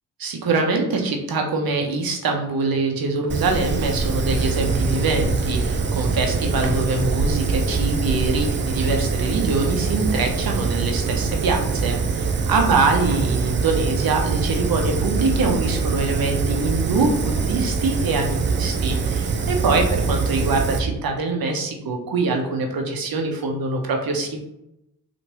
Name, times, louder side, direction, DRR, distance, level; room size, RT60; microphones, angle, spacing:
voice 1, 0.2-24.4, right 3 dB, 50° right, 3 dB, 0.9 m, -24 dB
Fire, 3.3-20.8, right 4 dB, 25° right, 0.4 m, -23 dB
2.9 x 2.6 x 3.0 m, 0.83 s
hypercardioid pair, 40°, 45 cm